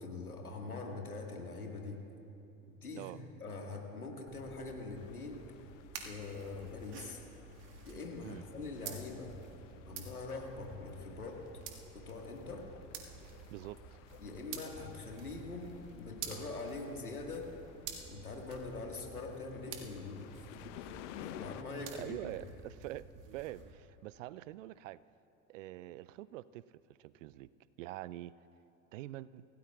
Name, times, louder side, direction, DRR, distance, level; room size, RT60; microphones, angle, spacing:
voice 1, 0.0-2.0 2.7-3.1 3.4-5.5 6.0-7.2 7.9-9.3 9.9-11.5 11.9-12.7 14.2-17.6 18.1-22.2, left 3 dB, 90° left, 1 dB, 1.9 m, -43 dB
sound 1, 4.3-23.7, right 6 dB, 45° right, 1.9 m, -50 dB
sound 2, 4.9-21.6, left 12 dB, 55° left, 0.8 m, -55 dB
voice 2, 13.5-14.0 21.9-23.1 23.3-25.0 25.5-27.5 27.8-28.3 28.9-29.5, right 15 dB, 60° right, 18 dB, 0.5 m, -45 dB
25.5 x 17.0 x 2.4 m, 2.9 s
figure-of-eight pair, 80°, 43 cm